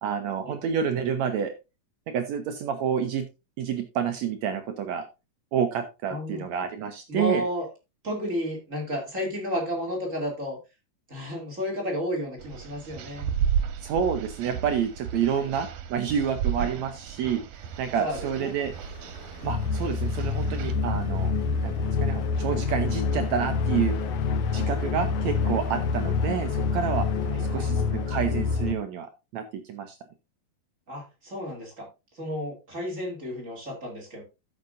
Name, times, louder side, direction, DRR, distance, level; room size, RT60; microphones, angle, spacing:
voice 1, 0.0-1.5 2.1-3.3 3.6-5.1 5.5-7.4 13.8-18.7 19.4-21.3 21.6-24.0 24.5-27.1 27.4-30.0, right 7 dB, 70° right, 7 dB, 1.9 m, -29 dB
voice 2, 6.1-6.4 7.1-7.7 8.0-10.6 11.1-13.3 15.3-15.5 18.0-18.5 27.2-27.7 30.9-31.9 32.1-34.2, equal, 25° right, 0 dB, 2.8 m, -32 dB
sound 1, 12.4-20.7, right 8 dB, 90° right, 2.7 m, -33 dB
Truck, 17.5-28.7, left 3 dB, 55° left, 3.1 m, -46 dB
sound 2, 19.4-28.8, left 5 dB, 70° left, 1.6 m, -27 dB
13.5 x 6.6 x 2.6 m, 0.26 s
omnidirectional pair, 3.8 m